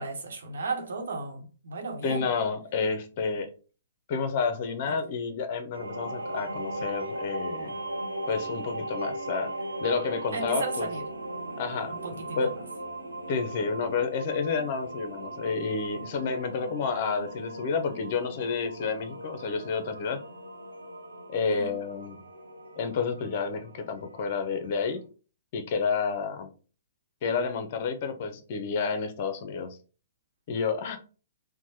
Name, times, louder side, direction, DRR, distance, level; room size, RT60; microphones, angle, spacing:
voice 1, 0.0-2.3 4.9-5.0 10.3-11.0 12.0-12.5 21.4-21.7, right 3 dB, 70° right, 0.9 m, -35 dB
voice 2, 2.0-3.5 4.1-7.8 8.3-9.5 9.8-10.9 11.6-12.0 12.4-12.5 13.3-20.2 21.3-22.2 22.8-25.0 25.5-26.5 27.2-29.8 30.5-31.0, left 5 dB, 45° left, 0.6 m, -30 dB
sound 1, 5.7-25.0, right 1 dB, 90° right, 0.5 m, -38 dB
4.5 x 2.1 x 2.7 m
figure-of-eight pair, 120°, 0 cm